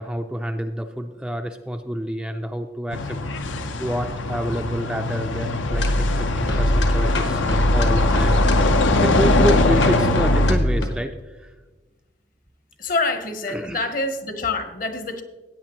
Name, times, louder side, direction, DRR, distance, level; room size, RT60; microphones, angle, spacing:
voice 1, 0.0-3.2 3.4-11.5 13.5-13.9, equal, 5° right, 5 dB, 0.3 m, -28 dB
sound 1, 2.9-10.5, left 2 dB, 85° left, 0.7 m, -22 dB
sound 2, 5.7-10.9, equal, 65° left, 1.3 m, -21 dB
voice 2, 12.8-15.2, left 3 dB, 45° left, 8 dB, 0.9 m, -26 dB
16.0 x 8.8 x 3.0 m, 1.3 s
head